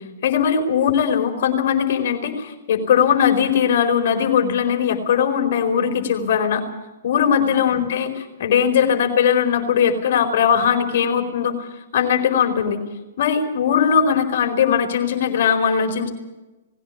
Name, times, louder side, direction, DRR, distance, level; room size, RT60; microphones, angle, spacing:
voice 1, 0.2-6.6 7.0-11.7 11.9-12.8 13.2-16.1, left 7 dB, 55° left, 4 dB, 4.6 m, -19 dB
20.0 x 16.5 x 8.6 m, 1.1 s
hypercardioid pair, 120°, 0 cm